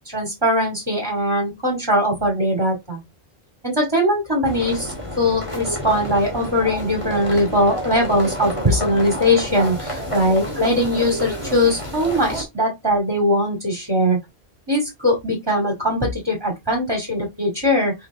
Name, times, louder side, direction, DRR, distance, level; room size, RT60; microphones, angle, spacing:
voice 1, 0.1-3.0 3.6-14.2 14.7-17.9, equal, 20° right, 0 dB, 2.3 m, -20 dB
sound 1, 4.4-12.4, equal, 30° left, 2.5 m, -29 dB
5.7 x 4.7 x 3.6 m, 0.19 s
omnidirectional pair, 1.1 m